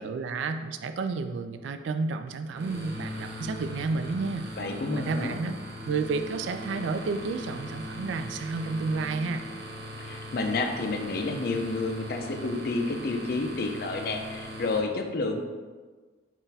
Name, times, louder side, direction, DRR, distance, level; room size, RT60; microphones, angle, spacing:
voice 1, 0.0-4.5 5.0-5.6 5.9-9.5, right 4 dB, 85° right, 8 dB, 0.3 m, -31 dB
sound 1, 2.6-14.8, equal, 60° right, 0.8 m, -39 dB
voice 2, 4.6-5.4 10.0-15.4, left 3 dB, 55° left, 4 dB, 0.4 m, -30 dB
3.9 x 2.5 x 4.0 m, 1.4 s
head